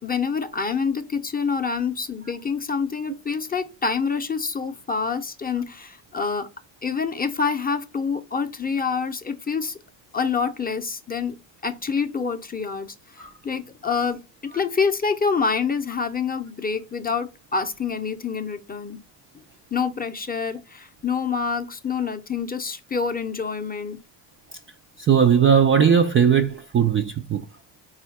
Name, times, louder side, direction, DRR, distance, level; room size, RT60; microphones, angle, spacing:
voice 1, 0.0-6.5 6.8-9.8 10.1-11.4 11.6-19.0 19.7-24.0, left 5 dB, 20° left, 0.6 m, -27 dB
voice 2, 25.0-27.5, right 7 dB, 30° right, 0.4 m, -18 dB
4.1 x 2.4 x 4.0 m
supercardioid pair, 70°, 48 cm